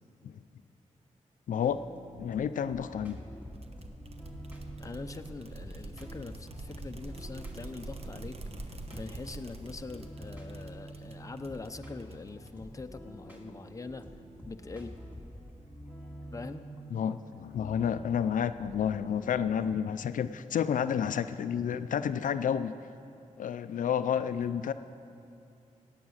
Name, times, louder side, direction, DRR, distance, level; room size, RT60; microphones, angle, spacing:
voice 1, 1.5-1.8 2.2-3.2 16.9-22.7 23.4-24.7, left 8 dB, 80° left, 11 dB, 0.4 m, -30 dB
sound 1, 1.6-19.4, right 1 dB, 10° right, 2.2 m, -48 dB
sound 2, 3.5-12.8, right 2 dB, 50° right, 1.0 m, -45 dB
voice 2, 4.8-8.4 8.7-14.1 14.5-14.9 16.3-16.6, left 3 dB, 25° left, 8 dB, 0.6 m, -43 dB
16.0 x 9.2 x 6.4 m, 2.6 s
wide cardioid pair, 90°, 13 cm